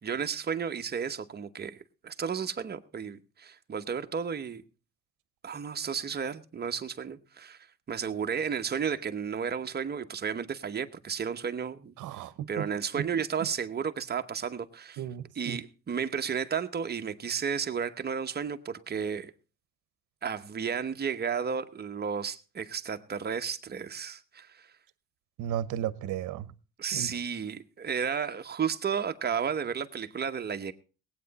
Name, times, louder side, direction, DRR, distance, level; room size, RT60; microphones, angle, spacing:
voice 1, 0.0-4.6 5.4-7.6 7.9-12.2 12.5-15.0 15.3-19.3 20.2-24.7 26.8-30.7, right 7 dB, 35° right, 1.0 m, -33 dB
voice 2, 12.0-12.7 13.0-13.1 15.0-15.6 25.4-26.5 26.9-27.1, right 11 dB, 80° right, 0.9 m, -34 dB
19.0 x 8.8 x 4.1 m
cardioid pair, 115°, 30 cm